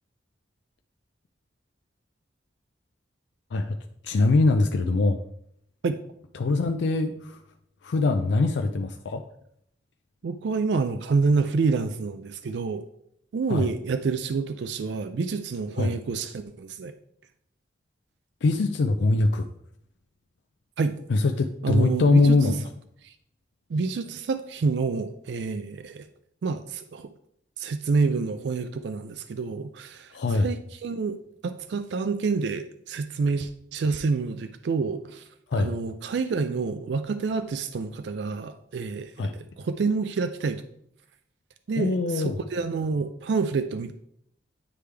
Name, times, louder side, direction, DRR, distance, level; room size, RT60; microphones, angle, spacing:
voice 1, 4.0-5.2 6.3-7.4 7.8-9.2 13.5-13.7 15.8-16.0 18.4-19.5 21.1-22.6 30.1-30.5 35.5-35.7 39.2-39.3 41.8-42.4, left 3 dB, 75° left, 6 dB, 0.4 m, -22 dB
voice 2, 10.2-12.8 13.3-16.9 20.8-20.9 21.6-22.5 23.0-23.1 23.7-26.1 26.4-27.1 27.6-35.2 35.5-40.6 41.7-44.0, right 4 dB, 70° right, 10 dB, 0.4 m, -28 dB
9.5 x 3.3 x 3.3 m, 0.72 s
head